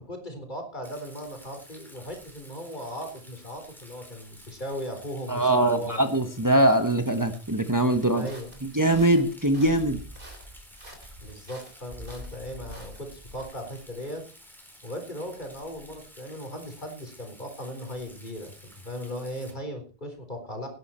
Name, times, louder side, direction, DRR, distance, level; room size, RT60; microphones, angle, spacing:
voice 1, 0.0-6.1 8.1-8.5 11.2-14.3 14.8-20.7, equal, 45° left, 5 dB, 4.2 m, -38 dB
Rain, 0.8-19.5, equal, ahead, 4.4 m, -52 dB
voice 2, 5.3-8.3 8.7-10.0, right 1 dB, 20° right, 7 dB, 1.2 m, -22 dB
sound 1, 8.2-13.4, right 1 dB, 55° right, 3.7 m, -45 dB
18.0 x 11.0 x 4.4 m, 0.36 s
omnidirectional pair, 1.1 m